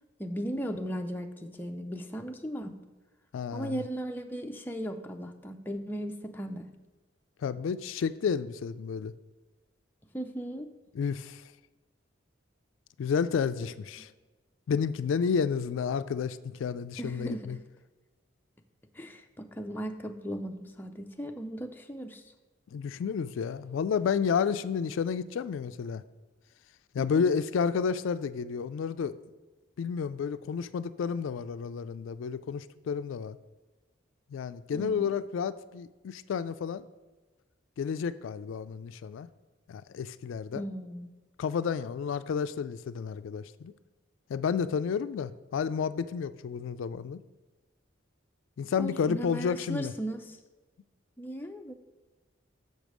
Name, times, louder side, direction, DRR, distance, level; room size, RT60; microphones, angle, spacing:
voice 1, 0.2-2.7 3.5-6.7 10.1-10.7 17.0-17.5 18.9-22.3 27.0-27.3 34.7-35.1 40.5-41.1 48.8-50.4 51.2-51.7, equal, 10° left, 4 dB, 0.4 m, -37 dB
voice 2, 3.3-3.8 7.4-9.1 10.9-11.4 13.0-14.1 14.7-17.6 22.7-26.0 26.9-29.2 29.8-33.4 34.3-36.8 37.8-39.3 39.7-40.6 41.4-43.7 44.3-47.2 48.6-49.9, left 6 dB, 80° left, 14 dB, 0.3 m, -31 dB
6.4 x 5.2 x 6.2 m, 1.2 s
head